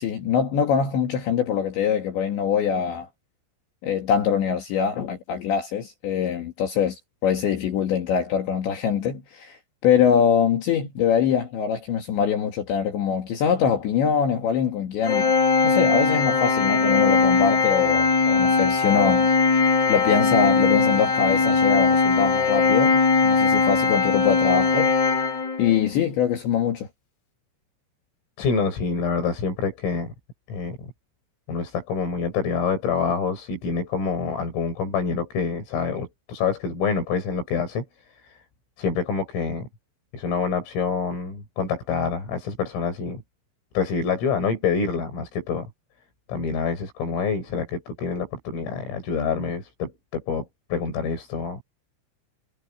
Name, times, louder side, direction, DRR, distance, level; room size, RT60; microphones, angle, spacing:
voice 1, 0.0-3.1 3.8-9.6 9.8-15.3 15.6-19.3 19.9-24.9 25.6-26.9, left 7 dB, 65° left, 4.4 m, -23 dB
Organ, 15.0-25.8, left 4 dB, 35° left, 3.6 m, -20 dB
voice 2, 28.4-30.1 30.5-30.9 31.5-37.8 38.2-38.3 38.8-39.7 40.1-43.2 43.7-45.7 46.3-51.6, left 5 dB, 80° left, 10.0 m, -26 dB
omnidirectional pair, 5.8 m